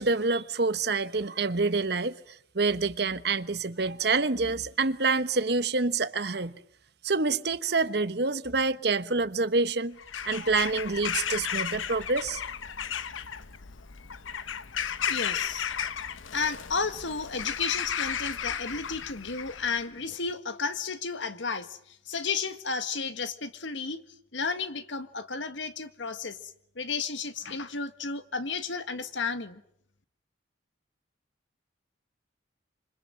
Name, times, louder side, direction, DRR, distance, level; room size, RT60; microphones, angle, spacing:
voice 1, 0.0-2.2 2.5-6.5 7.0-10.0 10.2-12.4, right 3 dB, 55° right, 1.1 m, -27 dB
Bird vocalization bird call bird song / Crow, 10.0-19.9, left 8 dB, 90° left, 1.0 m, -34 dB
voice 2, 15.1-15.7 16.3-24.0 24.3-29.6, left 5 dB, 75° left, 1.7 m, -33 dB
26.5 x 25.5 x 7.6 m
head